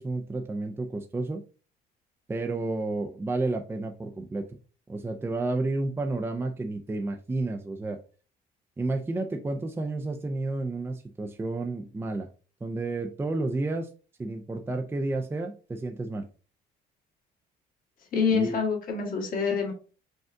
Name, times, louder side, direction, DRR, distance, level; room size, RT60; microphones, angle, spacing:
voice 1, 0.0-1.4 2.3-4.6 4.9-8.0 8.8-12.3 12.6-13.9 14.2-16.3 18.3-18.6, right 2 dB, 15° right, 4 dB, 0.4 m, -31 dB
voice 2, 18.1-19.7, left 5 dB, 55° left, 0 dB, 1.7 m, -26 dB
5.2 x 2.3 x 3.6 m, 0.36 s
cardioid pair, 110°, 17 cm